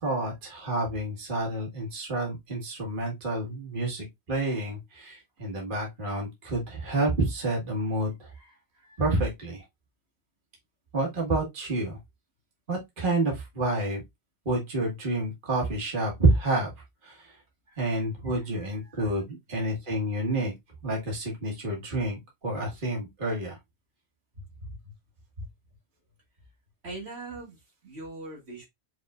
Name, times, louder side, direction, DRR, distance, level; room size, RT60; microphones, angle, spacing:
voice 1, 0.0-8.3 9.0-9.6 10.9-12.0 12.7-14.0 14.4-16.7 17.0-17.4 17.8-20.5 20.8-23.6, right 2 dB, 50° right, 1.6 m, -29 dB
voice 2, 8.4-9.0 17.7-18.4 18.9-19.0 24.6-24.8 25.4-25.5 26.8-28.7, right 2 dB, 70° right, 1.8 m, -42 dB
5.0 x 3.5 x 2.3 m
omnidirectional pair, 1.2 m